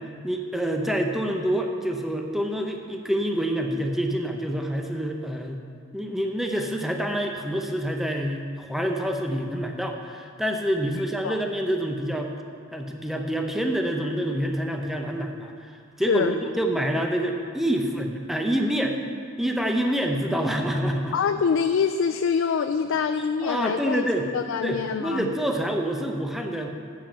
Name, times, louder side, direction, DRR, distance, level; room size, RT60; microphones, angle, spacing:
voice 1, 0.2-5.6 5.9-12.3 12.7-19.0 19.4-21.1 23.4-24.3 24.6-26.7, right 1 dB, ahead, 2 dB, 0.7 m, -27 dB
voice 2, 16.1-16.4 21.1-24.0 24.3-25.3, left 6 dB, 65° left, 8 dB, 0.3 m, -25 dB
7.3 x 7.2 x 7.5 m, 2.2 s
head